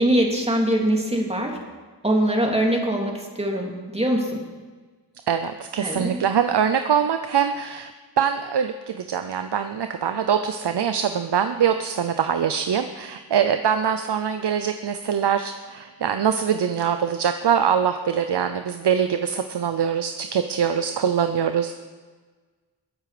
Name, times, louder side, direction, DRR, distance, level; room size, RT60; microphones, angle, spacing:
voice 1, 0.0-1.6 2.0-4.4 5.8-6.1, right 1 dB, 15° right, 0 dB, 2.9 m, -22 dB
voice 2, 5.3-7.9 8.2-21.7, right 8 dB, 75° right, 9 dB, 0.7 m, -23 dB
21.5 x 8.2 x 5.1 m, 1.4 s
wide cardioid pair, 50°, 41 cm